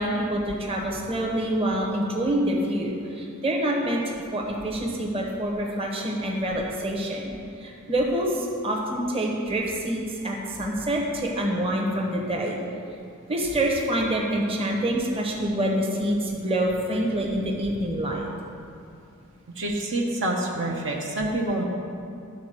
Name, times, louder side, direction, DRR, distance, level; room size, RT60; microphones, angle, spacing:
voice 1, 0.0-7.3 7.6-12.6 13.3-18.3, right 1 dB, 25° right, -2 dB, 1.1 m, -26 dB
voice 2, 19.6-21.6, right 1 dB, 60° right, -1 dB, 0.9 m, -27 dB
11.5 x 4.1 x 6.7 m, 2.5 s
head